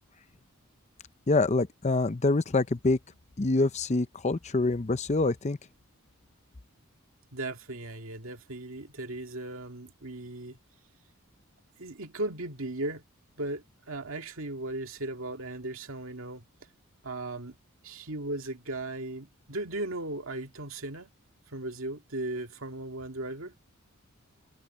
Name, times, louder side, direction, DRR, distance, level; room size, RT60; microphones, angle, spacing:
voice 1, 1.3-3.0 3.4-5.6, left 2 dB, 30° left, 0.6 m, -25 dB
voice 2, 7.3-10.6 11.8-13.0 13.4-16.4 17.0-17.6 17.8-21.1 21.5-23.5, right 2 dB, 70° right, 2.3 m, -37 dB
head